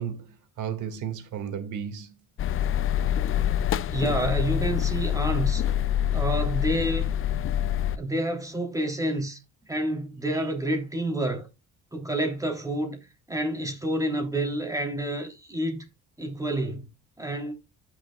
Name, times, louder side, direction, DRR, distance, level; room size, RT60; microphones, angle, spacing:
voice 1, 0.0-2.2, right 8 dB, 80° right, 2.1 m, -34 dB
sound 1, 2.4-8.0, left 10 dB, 45° left, 0.4 m, -26 dB
voice 2, 3.9-5.6 6.1-7.1 8.0-9.4 9.7-11.5 11.9-13.0 13.3-15.8 16.2-16.8 17.2-17.5, right 1 dB, 10° right, 3.3 m, -28 dB
15.0 x 6.1 x 2.4 m
cardioid pair, 90°, 30 cm